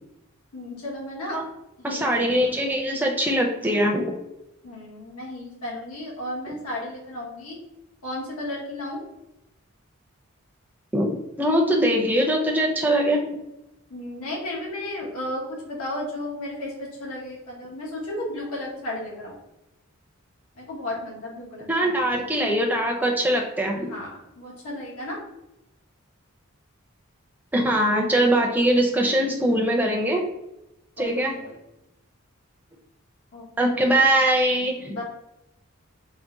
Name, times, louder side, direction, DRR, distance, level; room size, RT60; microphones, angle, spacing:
voice 1, 0.5-1.4 1.8-2.4 4.6-7.6 8.0-9.0 13.9-19.4 20.6-22.2 23.9-25.2 31.0-31.6 33.3-33.4 34.9-35.0, left 1 dB, 90° left, -3 dB, 1.2 m, -34 dB
voice 2, 1.8-4.1 10.9-13.2 21.7-23.9 27.5-30.2 31.0-31.3 33.6-35.0, right 1 dB, 10° right, 0 dB, 0.4 m, -22 dB
3.8 x 2.1 x 3.6 m, 0.91 s
head